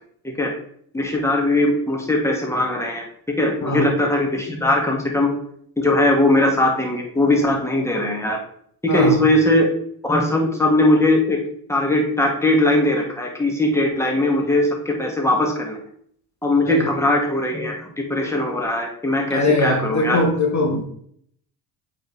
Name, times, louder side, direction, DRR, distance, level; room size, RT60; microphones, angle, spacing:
voice 1, 0.9-3.0 3.4-5.3 5.8-8.4 8.8-9.7 10.0-11.4 11.7-15.8 16.4-20.2, left 1 dB, 5° left, 1 dB, 2.1 m, -20 dB
voice 2, 8.9-9.2 16.7-16.9 19.3-20.8, left 2 dB, 35° left, 1 dB, 1.7 m, -21 dB
7.8 x 5.0 x 3.4 m, 0.64 s
supercardioid pair, 65°, 47 cm